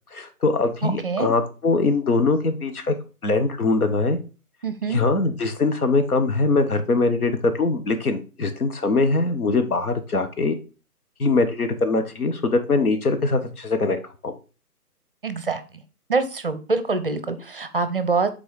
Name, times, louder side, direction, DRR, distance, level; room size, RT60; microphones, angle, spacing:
voice 1, 0.1-2.9 3.2-4.2 4.9-10.6 11.2-14.0 14.2-14.3, left 3 dB, 70° left, 7 dB, 1.2 m, -22 dB
voice 2, 0.8-1.3 4.6-5.0 15.2-15.8 16.1-18.3, right 4 dB, 35° right, 11 dB, 0.6 m, -25 dB
6.3 x 4.0 x 4.7 m, 0.33 s
figure-of-eight pair, 145°, 46 cm